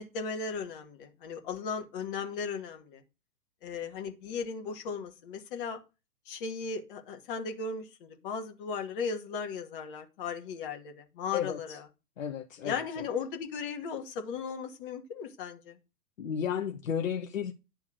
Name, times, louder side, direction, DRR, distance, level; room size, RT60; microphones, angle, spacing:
voice 1, 0.0-3.0 3.6-5.8 6.3-11.8 12.6-15.8, left 5 dB, 35° left, 1.4 m, -36 dB
voice 2, 11.3-11.8 12.2-13.1 16.2-17.5, left 8 dB, 55° left, 0.9 m, -33 dB
10.0 x 3.5 x 6.3 m
figure-of-eight pair, 115°, 47 cm